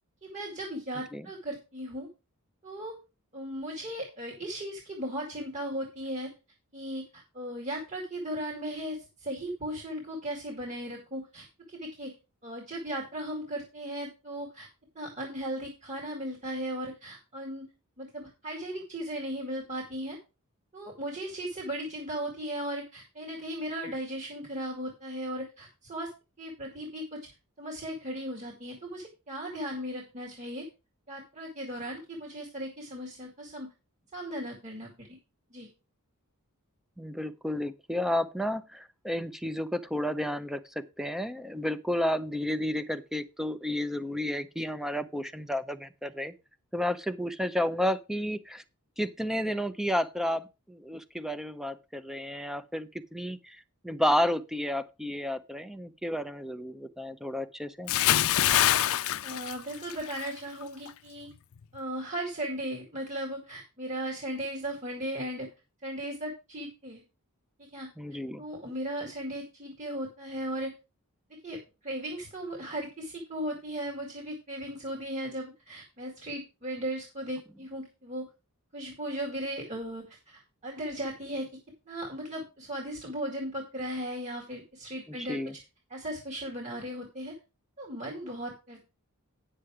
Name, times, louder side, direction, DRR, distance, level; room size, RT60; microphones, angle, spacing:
voice 1, 0.2-2.1 2.6-3.0 3.3-6.3 6.7-12.1 12.4-14.7 15.0-17.7 18.0-20.2 20.7-26.1 26.4-27.2 27.6-30.7 31.1-33.7 34.1-35.2 35.5-35.7 59.2-61.3 61.7-65.5 65.8-67.0 67.6-67.9 68.4-70.7 71.4-71.6 71.8-78.2 78.7-81.5 81.9-85.4 85.9-87.3 87.8-88.9, right 1 dB, 35° right, 2.2 m, -37 dB
voice 2, 37.0-46.3 46.7-48.6 49.0-57.9 68.0-68.4 85.1-85.5, left 1 dB, ahead, 0.6 m, -32 dB
Bathtub (filling or washing) / Splash splatter, 57.9-60.3 60.6-60.9, left 13 dB, 65° left, 0.4 m, -25 dB
9.5 x 6.7 x 4.8 m
head